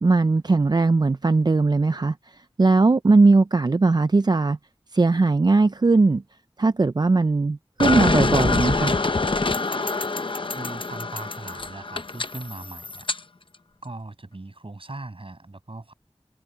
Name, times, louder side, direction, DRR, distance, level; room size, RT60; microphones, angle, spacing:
voice 1, 0.0-4.6 4.9-6.2 6.6-9.0, right 3 dB, 45° right, 0.4 m, -19 dB
sound 1, 7.8-13.2, left 3 dB, 55° left, 0.8 m, -25 dB
voice 2, 10.5-13.1 13.8-15.9, right 2 dB, 60° right, 6.9 m, -39 dB
wide cardioid pair, 50°, 10 cm